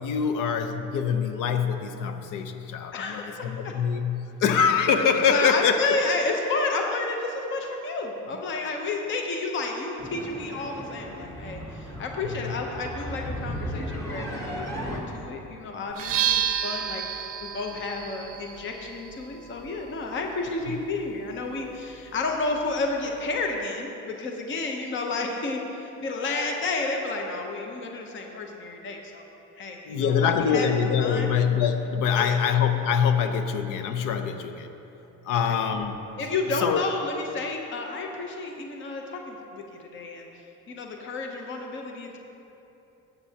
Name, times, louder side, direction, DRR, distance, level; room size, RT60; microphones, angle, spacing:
voice 1, 0.0-6.0 12.3-12.6 20.7-20.8 29.9-34.7 35.2-36.0 36.6-36.8, left 7 dB, 70° left, 8 dB, 0.7 m, -24 dB
voice 2, 2.9-3.7 5.2-29.2 29.6-30.7 31.0-31.3 32.1-32.4 35.3-35.6 36.2-40.3 40.7-42.2, left 3 dB, 35° left, 2 dB, 0.8 m, -31 dB
sound 1, 10.0-15.0, equal, 10° left, 1.0 m, -36 dB
sound 2, 15.9-23.6, right 9 dB, 45° right, 0.6 m, -33 dB
13.5 x 8.2 x 2.8 m, 3.0 s
cardioid pair, 160°, 33 cm